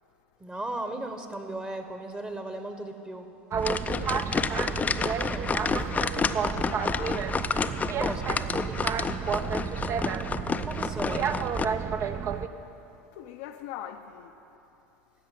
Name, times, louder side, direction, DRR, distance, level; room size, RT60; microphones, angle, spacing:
voice 1, 0.4-3.3 5.3-5.6 8.0-8.3 10.6-11.4, right 1 dB, 15° right, 1.1 m, -36 dB
Boat Water vehicle, 3.5-12.5, right 7 dB, 35° right, 0.6 m, -31 dB
sound 1, 3.6-11.6, left 5 dB, 20° left, 0.5 m, -30 dB
voice 2, 3.9-4.6 5.2-5.3 6.7-7.3 9.2-10.0 13.1-14.3, left 10 dB, 65° left, 0.6 m, -43 dB
15.5 x 5.5 x 9.3 m
hypercardioid pair, 90°, 7 cm